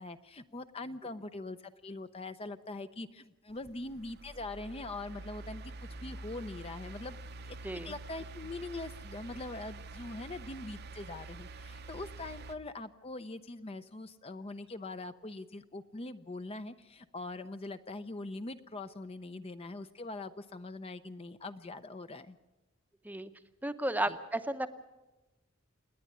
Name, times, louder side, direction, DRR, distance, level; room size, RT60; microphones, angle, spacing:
voice 1, 0.0-5.7 6.0-7.2 7.5-7.6 7.8-22.4 24.1-24.2, left 2 dB, 30° left, 10 dB, 0.6 m, -42 dB
sound 1, 3.5-12.6, right 2 dB, 50° right, 0.8 m, -47 dB
voice 2, 7.6-8.0 23.0-23.3 23.6-24.8, right 1 dB, 10° right, 10 dB, 0.7 m, -34 dB
28.0 x 10.0 x 9.5 m, 1.1 s
head